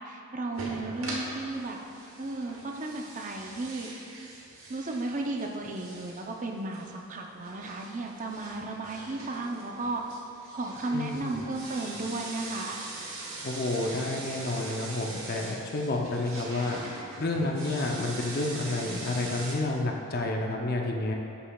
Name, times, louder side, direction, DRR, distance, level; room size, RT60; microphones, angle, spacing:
voice 1, 0.0-1.8 2.2-3.9 4.7-10.0 10.5-12.8, right 2 dB, 35° right, 2 dB, 0.5 m, -34 dB
sound 1, 0.5-19.6, right 2 dB, 65° right, 1.2 m, -42 dB
voice 2, 10.9-11.2 13.4-16.8 17.2-21.1, left 2 dB, 45° left, 1 dB, 0.6 m, -30 dB
11.0 x 5.6 x 2.3 m, 2.7 s
head